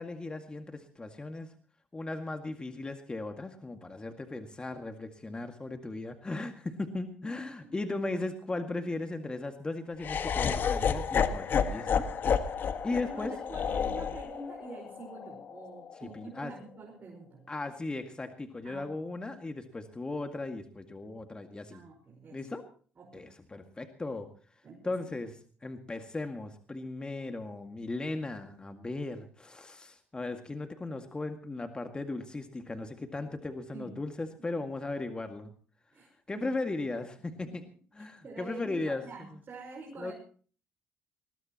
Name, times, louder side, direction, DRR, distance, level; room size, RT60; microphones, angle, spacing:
voice 1, 0.0-1.5 1.9-12.1 12.8-13.3 16.0-16.5 17.5-21.8 22.3-22.6 23.1-24.3 24.8-25.3 25.6-35.5 36.3-37.6 37.9-39.0 40.0-40.1, left 2 dB, 20° left, 5 dB, 2.0 m, -37 dB
voice 2, 7.4-7.8 12.9-17.5 18.6-18.9 21.7-22.5 23.0-23.3 24.6-25.0 33.7-34.0 34.4-34.7 35.9-36.5 37.4-37.6 38.0-40.1, right 3 dB, 40° right, 0 dB, 5.5 m, -47 dB
Laughter, 10.0-16.2, left 7 dB, 50° left, 1.6 m, -31 dB
20.5 x 19.5 x 3.0 m, 0.43 s
supercardioid pair, 70°, 4 cm